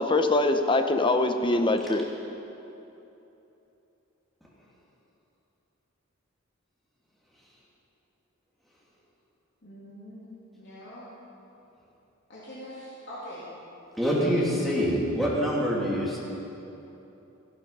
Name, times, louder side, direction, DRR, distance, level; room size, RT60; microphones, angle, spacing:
voice 1, 0.0-2.1, left 2 dB, 25° left, 7 dB, 0.7 m, -23 dB
voice 2, 9.6-11.1 12.3-13.5 14.2-14.6, equal, 55° left, -8 dB, 2.9 m, -43 dB
voice 3, 14.0-16.2, equal, ahead, -6 dB, 2.4 m, -25 dB
14.5 x 12.0 x 5.5 m, 3.0 s
head